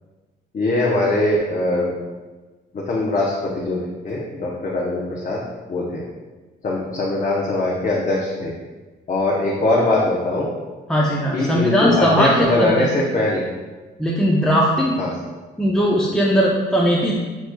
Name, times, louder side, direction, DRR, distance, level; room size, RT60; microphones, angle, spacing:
voice 1, 0.5-1.9 2.7-3.8 4.0-5.4 5.7-6.0 6.6-8.5 9.1-10.5 11.3-13.4 15.0-15.1, left 2 dB, 40° left, -4 dB, 0.8 m, -21 dB
voice 2, 10.9-12.9 14.0-14.9 15.6-17.1, equal, 5° left, -4 dB, 0.6 m, -18 dB
7.7 x 3.0 x 2.2 m, 1.3 s
cardioid pair, 90°, 20 cm